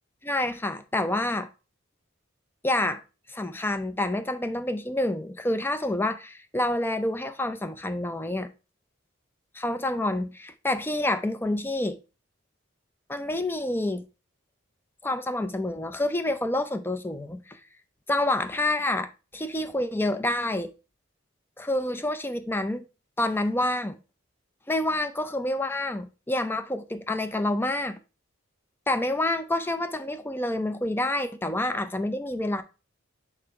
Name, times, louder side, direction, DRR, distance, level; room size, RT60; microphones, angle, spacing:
voice 1, 0.2-1.5 2.6-3.0 3.3-8.5 9.5-12.0 13.1-14.0 15.0-17.6 18.1-20.7 21.6-22.8 23.2-24.0 24.7-28.0 28.9-32.6, left 1 dB, 10° left, 0.4 m, -28 dB
4.9 x 4.4 x 4.7 m
head